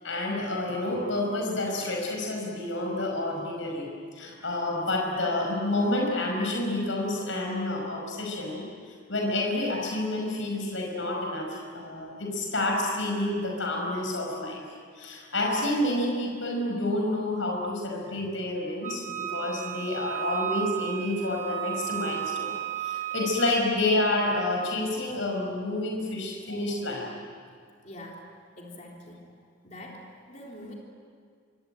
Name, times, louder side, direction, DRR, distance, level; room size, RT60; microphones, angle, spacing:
voice 1, 0.0-3.9 4.2-8.6 9.1-14.6 15.0-27.1, left 2 dB, 70° left, 0 dB, 5.5 m, -29 dB
Wind instrument woodwind instrument, 18.8-23.5, right 12 dB, 35° right, 1.7 m, -34 dB
voice 2, 27.8-28.2 28.6-29.2 29.6-30.7, left 1 dB, 35° left, -2 dB, 3.8 m, -44 dB
25.5 x 25.5 x 9.1 m, 2.1 s
head